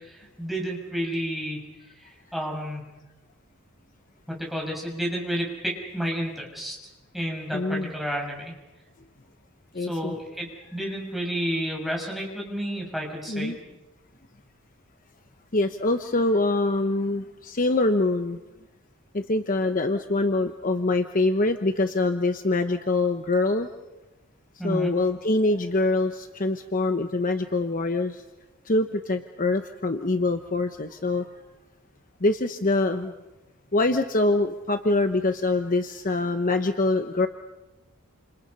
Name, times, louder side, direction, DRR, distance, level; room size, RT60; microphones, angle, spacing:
voice 1, 0.0-1.7 2.0-2.9 4.3-6.8 7.1-8.5 9.8-13.5 24.6-24.9, equal, ahead, -1 dB, 6.6 m, -31 dB
voice 2, 7.5-7.9 9.7-10.1 13.3-13.6 15.5-18.4 19.1-23.7 24.6-28.2 28.6-31.3 32.2-33.1 33.7-37.3, left 2 dB, 40° left, 7 dB, 1.1 m, -24 dB
29.5 x 28.0 x 5.6 m, 1.1 s
head